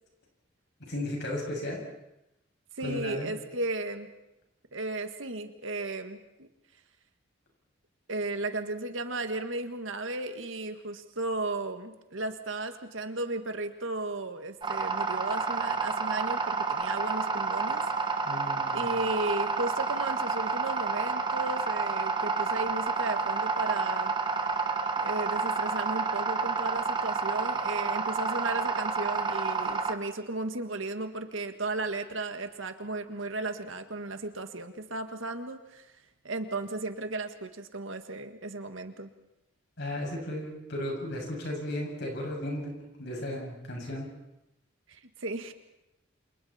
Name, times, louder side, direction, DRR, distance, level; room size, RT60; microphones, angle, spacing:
voice 1, 0.8-1.8 2.8-3.3 18.2-18.8 39.8-42.7 43.0-44.1, left 1 dB, 55° left, 0 dB, 7.3 m, -35 dB
voice 2, 2.8-4.1 4.7-6.5 8.1-17.8 18.7-24.1 25.0-35.9 36.2-39.1 44.9-45.5, right 2 dB, 70° right, 7 dB, 1.8 m, -35 dB
sound 1, 14.6-29.9, right 4 dB, 25° right, 1.3 m, -29 dB
29.0 x 27.5 x 4.4 m, 0.88 s
head